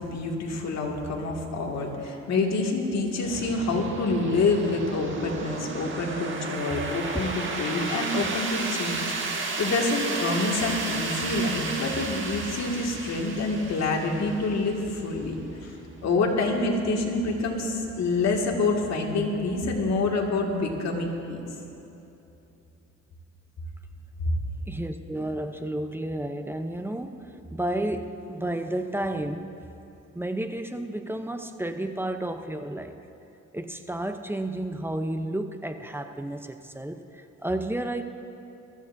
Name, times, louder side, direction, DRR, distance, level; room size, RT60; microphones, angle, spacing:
voice 1, 0.0-15.4 15.6-15.7 16.0-21.4 24.2-24.3, left 3 dB, 60° left, 0 dB, 2.1 m, -27 dB
sound 1, 3.2-21.8, right 3 dB, 40° right, 1.7 m, -35 dB
voice 2, 24.7-29.7 30.1-33.0 33.5-38.0, right 1 dB, 5° right, 7 dB, 0.7 m, -32 dB
22.0 x 14.0 x 2.7 m, 2.9 s
cardioid pair, 90°, 30 cm